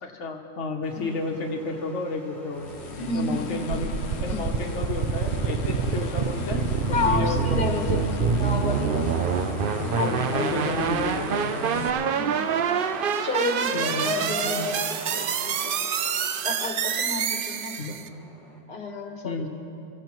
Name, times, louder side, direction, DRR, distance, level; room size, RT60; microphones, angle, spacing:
voice 1, 0.0-2.7 3.1-3.9 4.2-8.5 9.5-12.1 13.7-14.7 17.8-18.0 19.2-19.5, left 3 dB, 85° left, 2 dB, 1.3 m, -32 dB
sound 1, 0.8-18.6, left 1 dB, ahead, 3.0 m, -44 dB
sound 2, 2.5-11.9, left 6 dB, 65° left, 1.0 m, -37 dB
voice 2, 3.0-3.6 4.3-4.5 6.9-9.4 9.9-10.1 10.4-10.5 12.1-12.5 13.2-15.7 16.4-17.7 18.7-19.4, left 3 dB, 45° left, 3 dB, 1.5 m, -30 dB
sound 3, 3.7-18.1, right 7 dB, 60° right, 0.7 m, -26 dB
24.5 x 14.5 x 3.1 m, 2.8 s
omnidirectional pair, 1.2 m